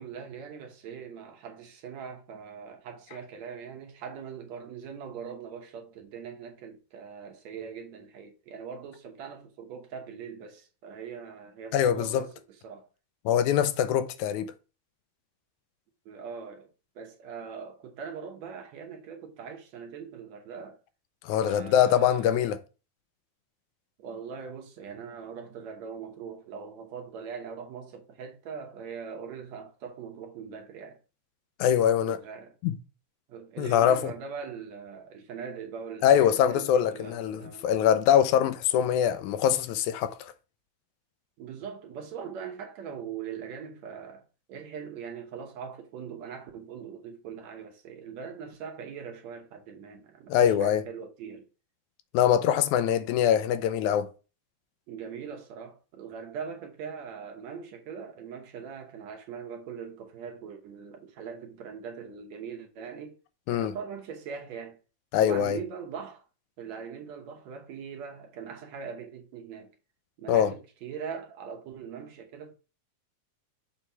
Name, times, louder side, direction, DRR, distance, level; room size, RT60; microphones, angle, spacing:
voice 1, 0.0-12.9 16.1-16.7 17.0-20.8 21.4-22.5 24.0-31.0 32.0-32.5 33.3-37.6 41.4-51.5 54.9-63.2 63.5-64.8 65.2-66.2 66.6-69.7 70.2-72.5, right 6 dB, 70° right, 2.2 m, -41 dB
voice 2, 11.7-12.3 13.3-14.5 21.2-22.6 31.6-32.2 32.6-32.8 33.6-34.1 36.0-40.3 50.3-50.8 52.1-54.1 63.5-63.7 65.1-65.6 70.3-70.5, left 9 dB, 85° left, 2.0 m, -23 dB
6.3 x 3.1 x 5.6 m
omnidirectional pair, 3.4 m